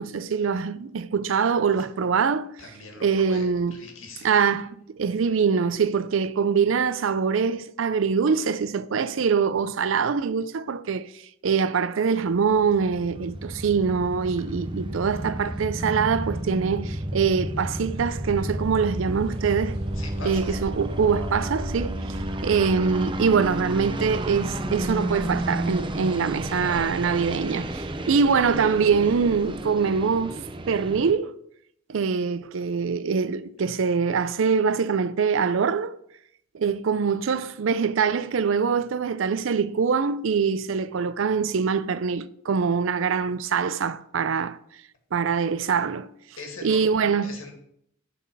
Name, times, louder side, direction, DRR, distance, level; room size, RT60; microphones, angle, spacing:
voice 1, 0.0-2.5 3.0-3.8 4.2-11.1 11.4-19.8 20.2-22.0 22.4-30.4 30.7-31.4 31.9-36.0 36.5-44.6 45.1-46.1 46.6-47.3, right 6 dB, 75° right, 0.4 m, -24 dB
voice 2, 2.6-4.4 20.0-20.6 46.4-46.9 47.2-47.5, left 3 dB, 85° left, 2.0 m, -41 dB
sound 1, 12.3-31.1, right 1 dB, 25° right, 0.5 m, -32 dB
sound 2, 17.7-29.6, equal, 50° right, 2.3 m, -43 dB
11.5 x 4.1 x 5.4 m
head